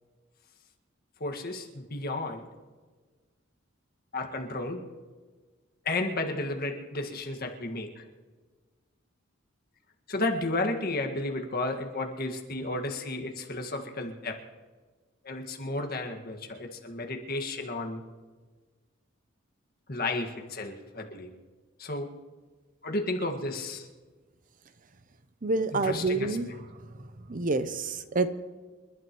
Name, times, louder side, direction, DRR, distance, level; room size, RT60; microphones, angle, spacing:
voice 1, 1.2-2.4 4.1-4.8 5.9-8.0 10.1-14.4 15.2-18.0 19.9-21.3 21.8-22.1 22.8-23.9 25.8-26.4, left 2 dB, 45° left, 3 dB, 1.8 m, -32 dB
voice 2, 25.4-26.5 27.3-28.3, right 3 dB, 40° right, 11 dB, 0.7 m, -27 dB
29.0 x 12.0 x 3.1 m, 1.4 s
head